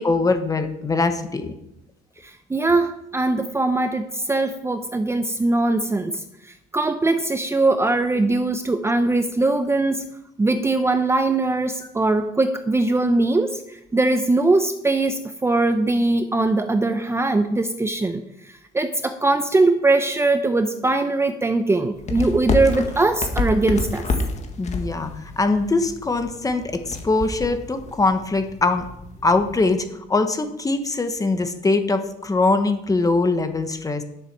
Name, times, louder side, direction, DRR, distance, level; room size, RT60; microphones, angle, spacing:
voice 1, 0.0-1.5 24.6-28.9 29.2-34.0, left 3 dB, 20° left, 8 dB, 1.3 m, -22 dB
voice 2, 2.2-6.2 6.7-10.1 10.4-18.2 18.7-24.0, right 2 dB, 15° right, 8 dB, 0.8 m, -21 dB
sound 1, 21.9-29.8, left 3 dB, 40° left, 1.7 m, -29 dB
10.5 x 7.4 x 6.1 m, 0.82 s
cardioid pair, 110°, 17 cm